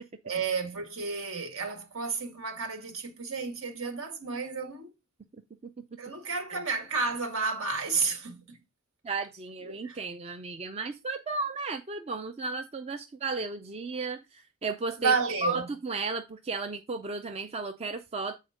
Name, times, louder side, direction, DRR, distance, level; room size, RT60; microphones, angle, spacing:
voice 1, 0.2-4.9 6.0-8.6 9.6-10.0 15.0-15.7, right 4 dB, 65° right, 2.0 m, -31 dB
voice 2, 9.0-15.1 15.4-18.3, right 3 dB, 30° right, 0.5 m, -34 dB
7.9 x 4.3 x 4.9 m
head